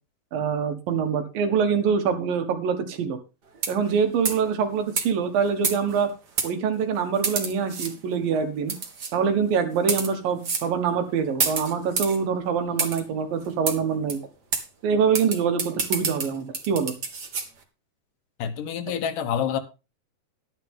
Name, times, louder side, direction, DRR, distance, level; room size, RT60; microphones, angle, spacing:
voice 1, 0.3-3.2 3.7-6.1 6.4-8.7 9.1-14.2 14.8-17.0, right 6 dB, 80° right, 3.3 m, -24 dB
sound 1, 3.5-3.9 4.2-4.5 5.0-5.1 5.6-6.0 6.4-6.5 7.2-7.9 8.7-9.1 9.8-10.1 10.4-10.7 11.4-12.2 12.8-13.0 13.7-13.8 14.1-14.2 14.5-14.6 15.1-17.5, right 5 dB, 40° right, 1.6 m, -28 dB
voice 2, 18.4-19.6, left 8 dB, 75° left, 2.6 m, -27 dB
12.0 x 10.5 x 3.6 m
omnidirectional pair, 4.0 m